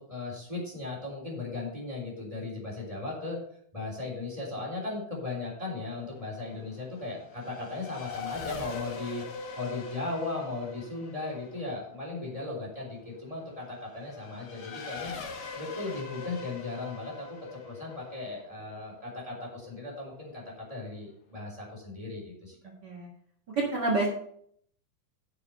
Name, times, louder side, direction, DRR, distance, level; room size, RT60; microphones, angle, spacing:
voice 1, 0.1-3.4 3.7-9.2 9.5-15.2 15.5-22.6, left 3 dB, 10° right, -3 dB, 3.1 m, -37 dB
Race car auto racing / Accelerating revving vroom, 5.6-19.7, left 4 dB, 75° left, 0.8 m, -43 dB
voice 2, 23.6-24.1, right 3 dB, 40° right, -3 dB, 2.2 m, -27 dB
7.2 x 6.7 x 6.6 m, 0.65 s
omnidirectional pair, 3.5 m